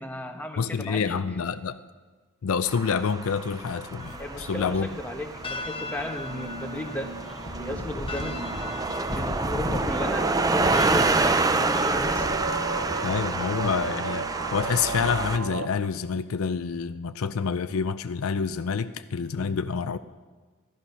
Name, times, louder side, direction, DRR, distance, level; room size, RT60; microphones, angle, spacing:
voice 1, 0.0-1.2 4.2-7.2 7.6-12.4 19.4-19.6, left 1 dB, 5° left, 3 dB, 1.0 m, -35 dB
voice 2, 0.6-1.8 2.4-4.9 13.0-20.0, left 6 dB, 70° left, 12 dB, 0.4 m, -28 dB
sound 1, 2.7-15.4, right 3 dB, 15° right, 0.4 m, -28 dB
sound 2, 4.0-13.9, left 2 dB, 25° left, 0.7 m, -37 dB
sound 3, 5.3-15.7, right 4 dB, 70° right, 0.7 m, -37 dB
15.0 x 11.5 x 5.6 m, 1.4 s
head